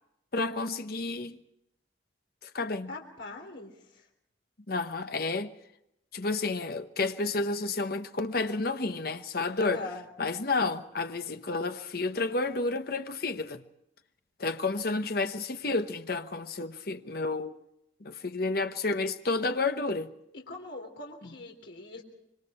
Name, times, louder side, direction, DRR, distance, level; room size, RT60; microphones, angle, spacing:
voice 1, 0.3-1.4 2.4-2.9 4.7-5.5 6.1-9.8 10.2-13.6 14.4-17.6 18.0-20.1, left 3 dB, 55° left, 1.0 m, -30 dB
voice 2, 2.9-4.1 9.6-10.0 20.3-22.0, left 3 dB, 70° left, 3.6 m, -42 dB
26.0 x 24.0 x 4.4 m
head